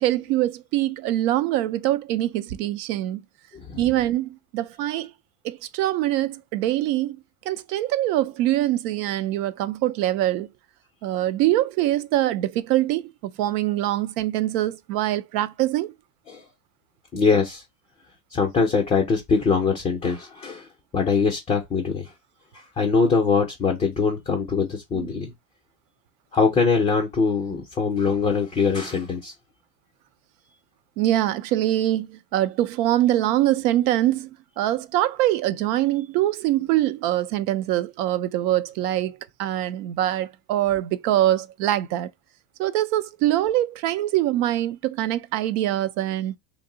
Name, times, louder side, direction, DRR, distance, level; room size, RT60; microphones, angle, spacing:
voice 1, 0.0-3.2 3.8-5.1 5.4-7.2 7.5-10.5 11.0-15.9 24.9-25.3 31.0-34.3 34.6-42.1 42.6-46.4, right 14 dB, 70° right, 0.5 m, -24 dB
voice 2, 3.5-3.9 16.3-16.4 17.1-17.6 18.3-20.7 20.9-22.1 22.8-25.3 26.3-29.3, left 5 dB, 15° left, 0.3 m, -22 dB
2.6 x 2.0 x 3.6 m
supercardioid pair, 130°, 49 cm